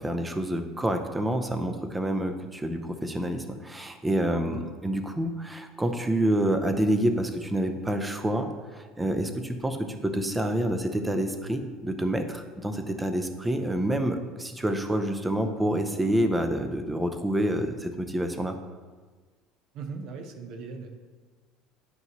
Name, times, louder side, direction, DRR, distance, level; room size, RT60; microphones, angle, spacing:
voice 1, 0.0-18.6, right 1 dB, 10° right, 7 dB, 0.5 m, -28 dB
voice 2, 19.7-20.9, right 4 dB, 55° right, 6 dB, 0.8 m, -38 dB
9.6 x 5.3 x 3.0 m, 1.4 s
cardioid pair, 140°, 0 cm